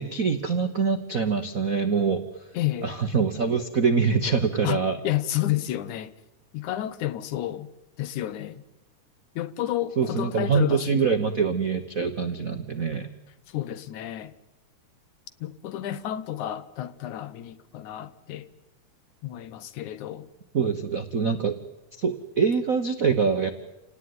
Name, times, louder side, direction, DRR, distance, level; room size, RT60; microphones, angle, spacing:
voice 1, 0.0-2.2 2.8-5.0 10.0-13.1 20.5-21.6 22.0-23.5, right 5 dB, 75° right, 0.7 m, -24 dB
voice 2, 2.5-3.0 4.6-6.1 6.5-7.7 8.0-8.6 9.4-11.1 13.5-14.3 15.4-18.5 19.2-20.3, left 13 dB, 80° left, 2.5 m, -31 dB
28.5 x 18.5 x 9.6 m
omnidirectional pair, 3.4 m